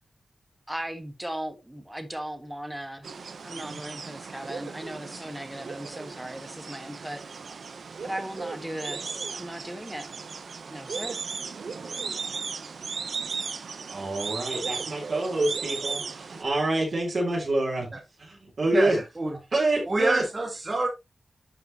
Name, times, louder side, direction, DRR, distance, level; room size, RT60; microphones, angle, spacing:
voice 1, 0.7-3.1 3.4-7.6 8.0-10.1 10.7-11.2, right 1 dB, 5° right, 1.6 m, -37 dB
sound 1, 3.0-16.4, right 5 dB, 75° right, 0.9 m, -36 dB
voice 2, 13.9-17.9 18.2-19.0 19.5-20.2, right 2 dB, 55° right, 4.2 m, -27 dB
voice 3, 18.7-19.4 19.9-20.9, right 2 dB, 30° right, 2.0 m, -27 dB
11.0 x 5.8 x 3.0 m
wide cardioid pair, 135°, 0 cm